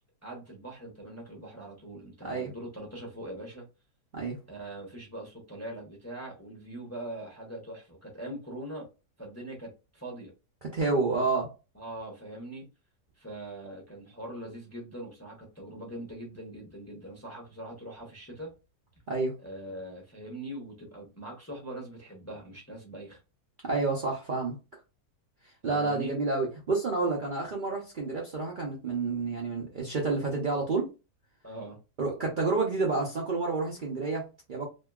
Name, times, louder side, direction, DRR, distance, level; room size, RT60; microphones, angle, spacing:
voice 1, 0.2-3.7 4.5-8.9 9.2-10.3 11.1-11.3 11.7-12.7 13.2-18.5 19.4-23.2 25.6-26.1 31.4-31.8, right 1 dB, 15° left, 0.5 m, -42 dB
voice 2, 10.6-11.5 19.1-19.4 23.6-24.6 25.6-30.9 32.0-34.7, right 3 dB, 85° right, 0.4 m, -29 dB
2.9 x 2.7 x 2.3 m
omnidirectional pair, 1.8 m